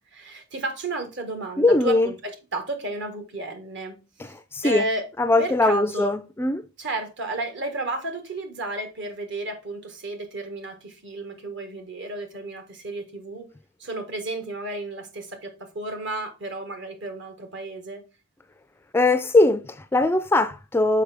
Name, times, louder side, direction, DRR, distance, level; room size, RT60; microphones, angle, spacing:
voice 1, 0.1-4.3 4.6-5.1 5.4-6.1 6.8-13.5 13.8-18.0, right 2 dB, 65° right, 1.4 m, -32 dB
voice 2, 1.6-2.1 4.2-4.8 5.2-6.6 18.9-21.0, left 2 dB, 10° left, 0.3 m, -21 dB
6.5 x 5.0 x 3.4 m
head